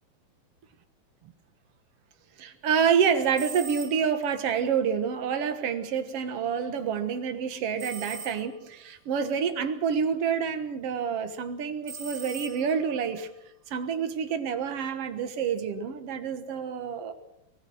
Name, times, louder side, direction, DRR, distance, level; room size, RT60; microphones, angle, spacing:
voice 1, 2.4-13.3 13.7-17.1, right 7 dB, 60° right, 1.7 m, -28 dB
sound 1, 3.3-4.3 7.8-8.8 11.8-13.0, right 5 dB, 30° right, 3.1 m, -41 dB
25.0 x 19.0 x 6.3 m
omnidirectional pair, 4.5 m